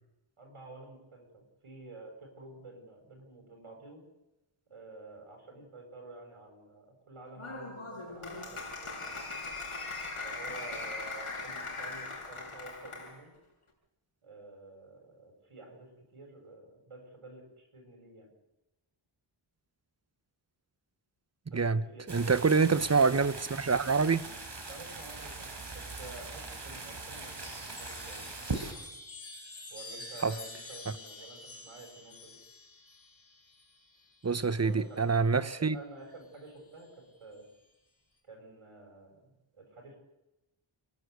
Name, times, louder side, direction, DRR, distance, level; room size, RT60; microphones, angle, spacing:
voice 1, 0.4-4.0 4.7-9.2 10.2-13.3 14.2-18.3 21.5-22.8 24.7-28.3 29.7-32.4 34.4-37.5 38.2-40.0, right 2 dB, 80° right, 7.5 m, -50 dB
Applause, 7.4-13.2, left 3 dB, 80° left, 6.7 m, -40 dB
voice 2, 21.5-24.3 30.2-30.3 34.2-35.8, right 5 dB, 30° right, 0.9 m, -26 dB
sound 1, 22.1-28.7, right 3 dB, 55° right, 4.0 m, -41 dB
Chime, 27.3-35.0 36.2-36.8, left 2 dB, 65° left, 4.0 m, -49 dB
30.0 x 11.5 x 8.1 m
wide cardioid pair, 90°, 50 cm